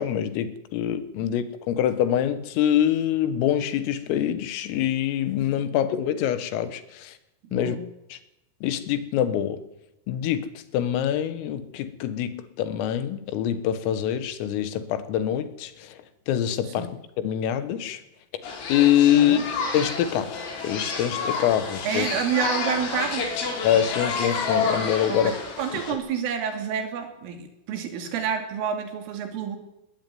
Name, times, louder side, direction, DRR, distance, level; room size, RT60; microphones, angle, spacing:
voice 1, 0.0-7.2 7.5-7.8 8.1-8.2 8.6-9.6 10.1-16.0 16.3-16.9 17.2-18.0 18.3-18.4 18.7-22.1 23.6-25.3, left 10 dB, 90° left, 12 dB, 4.1 m, -25 dB
voice 2, 7.5-7.8 16.8-16.9 19.1-19.4 21.9-23.3 25.1-29.6, right 7 dB, 75° right, 6 dB, 5.1 m, -29 dB
sound 1, 18.4-25.9, left 4 dB, 70° left, 6.5 m, -29 dB
21.0 x 17.5 x 9.4 m, 0.92 s
omnidirectional pair, 5.8 m